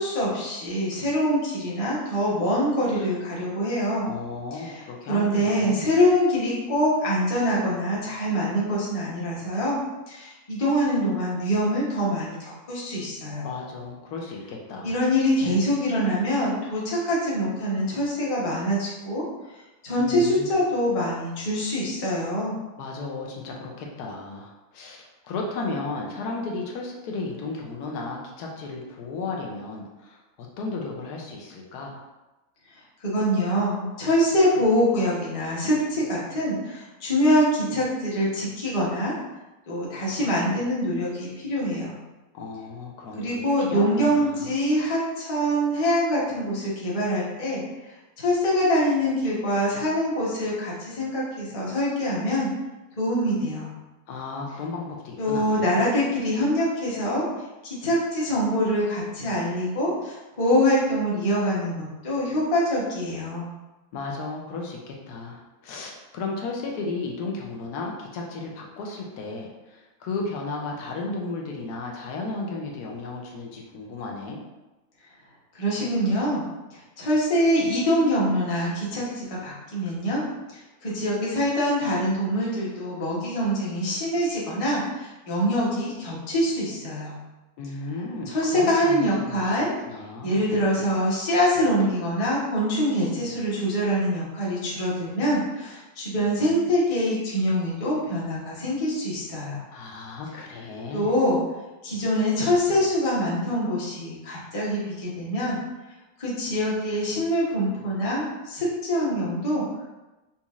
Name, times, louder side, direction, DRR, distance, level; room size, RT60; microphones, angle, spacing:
voice 1, 0.0-4.1 4.5-4.8 5.1-9.8 10.1-13.5 14.8-19.2 19.8-22.6 33.0-39.1 39.7-42.0 43.2-47.6 48.2-52.5 53.0-53.7 55.2-63.5 75.5-80.2 80.5-87.2 88.3-89.7 90.2-99.6 100.9-101.4 101.8-105.6 106.2-109.6, equal, 30° left, -6 dB, 0.7 m, -24 dB
voice 2, 4.0-5.9 13.3-14.9 20.0-20.5 22.8-32.0 42.3-44.5 54.1-55.8 63.9-74.4 87.6-90.4 99.7-101.1, left 3 dB, 85° left, 0 dB, 1.1 m, -34 dB
4.0 x 2.9 x 2.4 m, 1.1 s
omnidirectional pair, 1.7 m